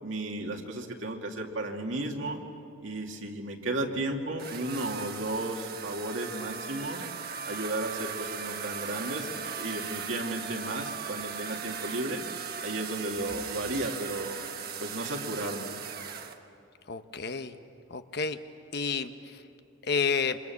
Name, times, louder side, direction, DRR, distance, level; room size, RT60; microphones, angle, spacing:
voice 1, 0.0-2.4 2.8-7.0 7.4-12.2 12.6-14.4 14.8-15.7, right 1 dB, 70° right, 2 dB, 2.5 m, -34 dB
sound 1, 4.4-16.4, right 6 dB, 50° right, 1.3 m, -38 dB
voice 2, 16.9-17.6 17.9-18.4 18.7-19.1 19.8-20.4, left 5 dB, 55° left, 9 dB, 1.0 m, -29 dB
27.5 x 25.5 x 7.2 m, 2.5 s
head